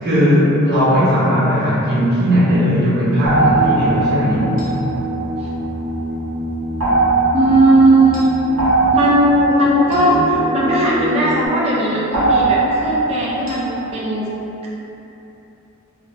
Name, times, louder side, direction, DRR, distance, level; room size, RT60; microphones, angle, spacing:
voice 1, 0.0-4.5, equal, 45° right, -11 dB, 0.9 m, -16 dB
sound 1, 3.3-11.5, equal, 25° left, 0.9 m, -27 dB
sound 2, 3.3-6.0 6.8-11.3 12.1-13.9, right 3 dB, 65° right, 0.7 m, -20 dB
voice 2, 7.3-8.4 8.9-14.3, right 1 dB, 25° right, -6 dB, 0.4 m, -16 dB
3.7 x 2.0 x 2.7 m, 2.9 s
head